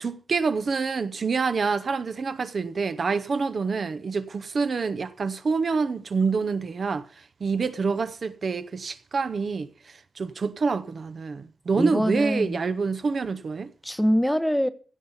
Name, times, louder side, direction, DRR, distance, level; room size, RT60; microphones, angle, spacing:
voice 1, 0.0-7.1 7.4-9.7 10.2-13.7, right 4 dB, 50° right, 0.7 m, -26 dB
voice 2, 11.7-12.6 13.8-14.7, equal, ahead, 0.8 m, -24 dB
16.0 x 5.6 x 8.0 m
wide cardioid pair, 125°, 0 cm